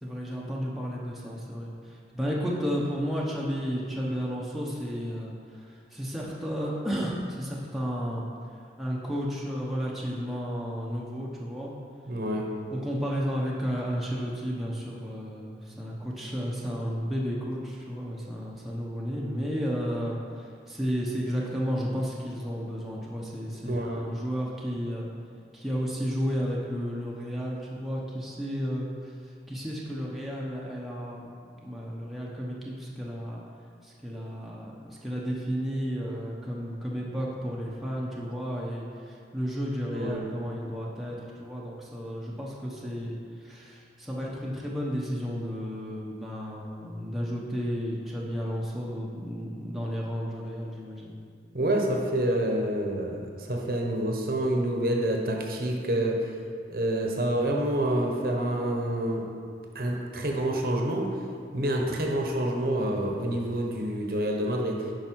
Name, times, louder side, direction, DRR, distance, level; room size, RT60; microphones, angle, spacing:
voice 1, 0.0-8.2 8.8-11.7 12.7-25.1 25.5-29.1 29.5-31.3 31.6-33.4 33.8-51.1, equal, ahead, -5 dB, 0.9 m, -32 dB
voice 2, 12.1-12.5 23.6-24.1 39.9-40.2 51.5-56.3 56.7-59.3 59.7-61.1 61.5-64.9, right 1 dB, 55° right, 0 dB, 1.0 m, -27 dB
9.0 x 5.6 x 4.6 m, 2.2 s
head